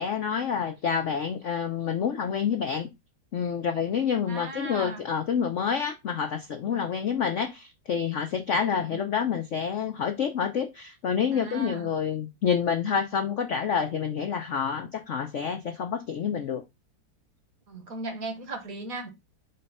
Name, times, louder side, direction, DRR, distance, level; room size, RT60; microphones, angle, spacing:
voice 1, 0.0-2.9 3.3-16.6, left 7 dB, 70° left, 0.7 m, -28 dB
voice 2, 4.3-5.0 8.6-9.1 11.3-11.9 17.7-19.1, right 2 dB, 50° right, 1.5 m, -37 dB
5.6 x 3.2 x 5.4 m
omnidirectional pair, 2.2 m